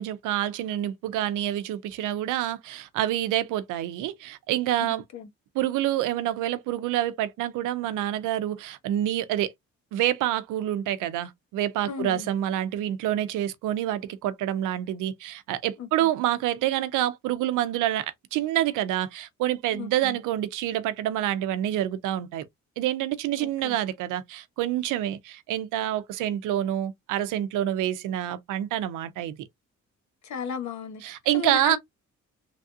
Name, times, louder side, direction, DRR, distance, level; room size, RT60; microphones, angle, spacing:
voice 1, 0.0-5.0 5.5-9.5 9.9-22.4 22.8-29.4 31.0-31.8, right 12 dB, 90° right, 0.6 m, -27 dB
voice 2, 4.8-5.3 11.8-12.3 15.8-15.9 19.7-20.1 23.4-23.8 30.2-31.0 31.3-31.8, left 8 dB, 65° left, 1.1 m, -34 dB
3.3 x 2.4 x 2.6 m
cardioid pair, 90°, 30 cm